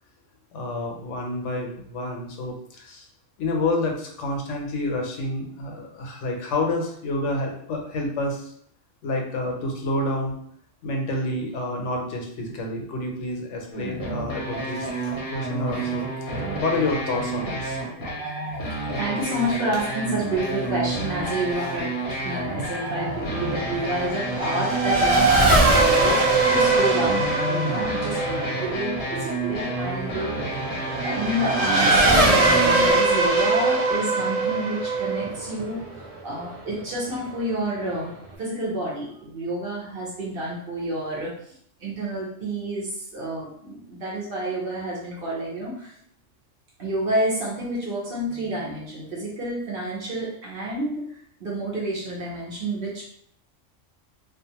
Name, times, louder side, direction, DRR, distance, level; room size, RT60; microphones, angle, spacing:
voice 1, 0.5-3.1 3.4-8.5 9.0-10.4 10.8-14.9 15.3-17.8, left 2 dB, 75° left, 1 dB, 1.0 m, -28 dB
sound 1, 13.7-32.9, right 2 dB, 55° left, 0.8 m, -30 dB
voice 2, 13.9-14.3 15.0-15.1 18.7-30.3 30.8-41.3 41.8-45.9 46.8-51.0 51.4-53.0, right 1 dB, 50° right, -5 dB, 1.0 m, -29 dB
Race car auto racing / Accelerating revving vroom, 22.6-36.7, right 2 dB, 70° right, 0.3 m, -22 dB
2.5 x 2.4 x 2.8 m, 0.64 s
omnidirectional pair, 1.3 m